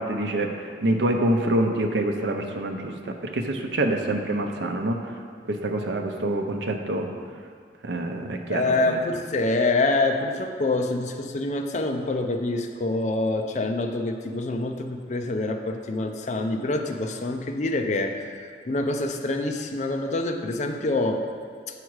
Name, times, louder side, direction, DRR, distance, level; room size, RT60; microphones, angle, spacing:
voice 1, 0.0-5.0 5.5-7.1 7.8-9.0, right 1 dB, 85° right, 3 dB, 0.7 m, -26 dB
voice 2, 8.5-18.3 18.7-21.2, left 2 dB, 40° left, 4 dB, 0.5 m, -26 dB
7.3 x 4.9 x 4.7 m, 2.2 s
head